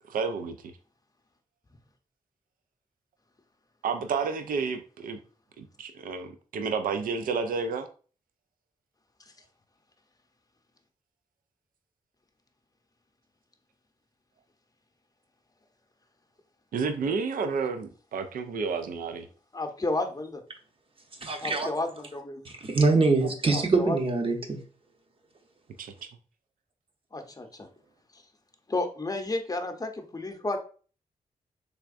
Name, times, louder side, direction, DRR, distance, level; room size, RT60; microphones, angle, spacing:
voice 1, 0.1-0.5 3.8-5.2 5.6-7.9 16.7-19.3 25.8-26.1, right 5 dB, 85° right, 0.4 m, -30 dB
voice 2, 19.5-20.4 21.4-22.4 23.5-24.0 27.1-27.7 28.1-28.2 28.7-30.6, left 2 dB, 25° left, 0.7 m, -32 dB
voice 3, 21.2-21.7 22.4-24.6, right 3 dB, 40° right, 0.8 m, -24 dB
3.5 x 3.3 x 2.4 m
cardioid pair, 60°, 14 cm